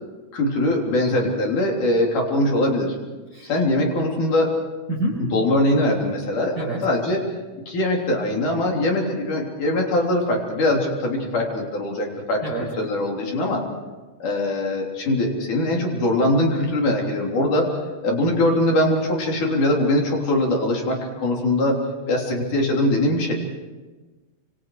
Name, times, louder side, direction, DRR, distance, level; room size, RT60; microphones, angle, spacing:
voice 1, 0.3-3.0 3.4-4.5 5.3-6.6 6.8-7.2 7.7-12.4 12.8-13.6 14.2-17.7 18.0-21.8 22.1-23.3, left 1 dB, 85° left, 0 dB, 5.1 m, -22 dB
voice 2, 4.9-5.2 6.6-6.8 12.4-12.7, right 2 dB, 25° right, -4 dB, 6.3 m, -27 dB
29.0 x 26.5 x 5.0 m, 1.2 s
omnidirectional pair, 3.5 m